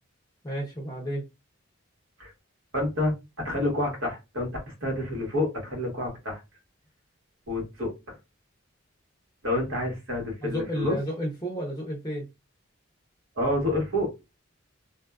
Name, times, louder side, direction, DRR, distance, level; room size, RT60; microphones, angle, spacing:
voice 1, 0.4-1.3 10.4-12.3, right 1 dB, 20° left, -2 dB, 0.6 m, -32 dB
voice 2, 2.7-3.1 3.4-6.4 7.5-8.2 9.4-10.9 13.3-14.1, left 1 dB, 80° right, 0 dB, 1.4 m, -28 dB
2.6 x 2.4 x 2.3 m, 0.24 s
head